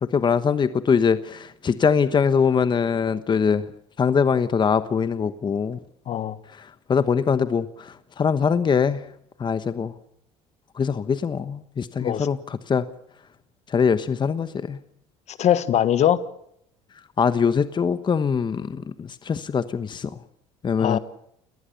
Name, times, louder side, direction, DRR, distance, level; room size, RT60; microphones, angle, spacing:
voice 1, 0.0-3.7 4.0-5.8 6.5-9.1 9.4-10.0 10.7-12.9 13.7-14.8 17.2-20.2 20.6-21.0, left 6 dB, 35° left, 1.1 m, -23 dB
voice 2, 6.1-6.4 12.0-12.3 15.3-16.2 20.8-21.0, left 10 dB, 50° left, 1.4 m, -21 dB
28.5 x 19.0 x 6.9 m
supercardioid pair, 75°, 14 cm